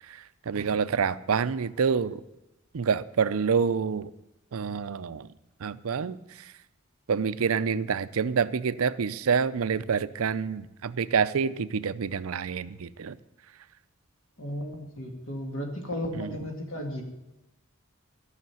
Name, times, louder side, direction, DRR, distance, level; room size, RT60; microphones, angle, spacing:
voice 1, 0.5-2.2 2.7-4.1 4.5-5.3 5.6-6.2 7.1-13.1 16.1-16.5, right 6 dB, 80° right, 15 dB, 0.5 m, -27 dB
voice 2, 14.4-17.0, equal, 60° left, 3 dB, 2.2 m, -34 dB
13.0 x 6.6 x 9.4 m, 0.96 s
head